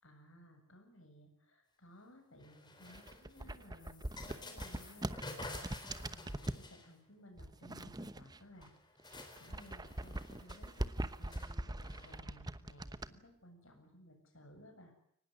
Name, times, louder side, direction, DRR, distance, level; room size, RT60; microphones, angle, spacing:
voice 1, 0.0-8.7 9.4-14.9, equal, 60° left, 5 dB, 7.6 m, -59 dB
sound 1, 2.4-7.2 8.3-8.4 8.6-12.2, left 2 dB, 20° left, 4.0 m, -51 dB
sound 2, 2.8-6.7 7.4-8.7 9.0-13.1, right 1 dB, 20° right, 0.9 m, -42 dB
23.5 x 19.5 x 9.9 m, 0.69 s
head